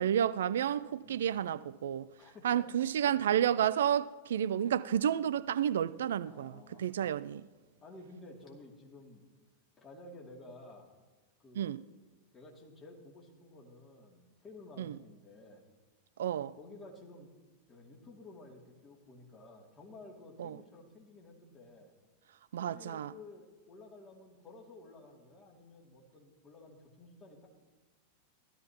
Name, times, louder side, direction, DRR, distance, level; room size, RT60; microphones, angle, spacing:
voice 1, 0.0-2.1 2.4-6.5 6.8-7.4 11.6-11.8 14.8-14.9 16.2-16.5 20.4-20.6 22.5-23.1, right 10 dB, 65° right, 0.3 m, -30 dB
voice 2, 2.2-2.7 3.0-3.1 6.2-7.3 7.8-9.2 9.8-10.9 11.4-11.8 12.3-15.7 16.4-17.3 17.7-21.9 22.6-27.5, left 2 dB, 25° left, 2.6 m, -53 dB
16.0 x 12.5 x 2.9 m
figure-of-eight pair, 90°, 0 cm